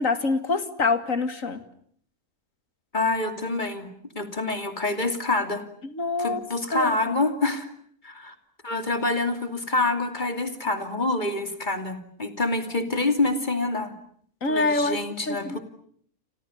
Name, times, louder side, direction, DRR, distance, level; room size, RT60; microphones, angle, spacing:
voice 1, 0.0-1.6 5.8-6.4 6.7-7.1 14.4-15.0 15.3-15.6, left 3 dB, 60° left, 10 dB, 2.5 m, -25 dB
voice 2, 2.9-3.9 4.1-5.6 6.2-7.7 8.0-8.3 8.6-13.9 14.5-15.6, left 2 dB, 30° left, 7 dB, 3.0 m, -26 dB
29.5 x 26.5 x 7.2 m, 0.63 s
omnidirectional pair, 1.5 m